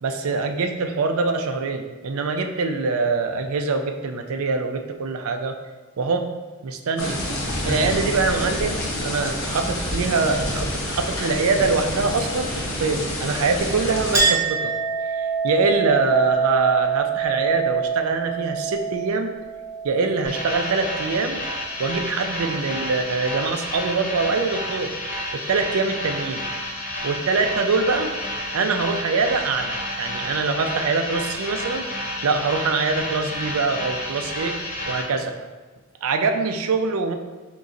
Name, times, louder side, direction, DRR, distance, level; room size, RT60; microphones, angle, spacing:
voice 1, 0.0-5.6 6.0-6.3 6.6-7.2 7.6-14.7 15.1-19.3 19.8-21.4 21.8-24.9 25.3-26.4 27.0-28.1 28.5-31.8 32.2-34.5 34.9-35.3 36.0-37.1, right 4 dB, 70° right, 6 dB, 0.4 m, -24 dB
sound 1, 7.0-14.3, left 1 dB, 65° left, 0.8 m, -28 dB
Chink clink, 14.1-21.2, right 6 dB, 15° right, 0.9 m, -25 dB
sound 2, 20.2-35.0, left 1 dB, 35° left, 0.6 m, -30 dB
3.9 x 3.0 x 3.7 m, 1.3 s
head